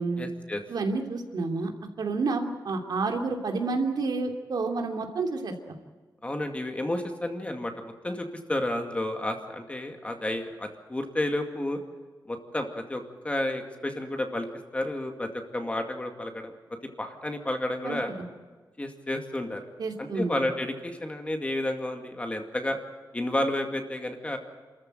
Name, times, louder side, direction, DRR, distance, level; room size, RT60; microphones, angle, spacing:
voice 1, 0.2-0.6 6.2-11.8 12.3-14.5 14.7-16.5 17.0-18.1 18.8-19.6 20.0-22.8 23.1-24.4, left 1 dB, 15° left, 5 dB, 2.2 m, -31 dB
voice 2, 0.7-1.7 2.0-5.5 17.8-18.0 19.8-20.3, right 3 dB, 70° right, 4 dB, 2.9 m, -29 dB
28.5 x 14.0 x 9.2 m, 1.4 s
wide cardioid pair, 160°, 7 cm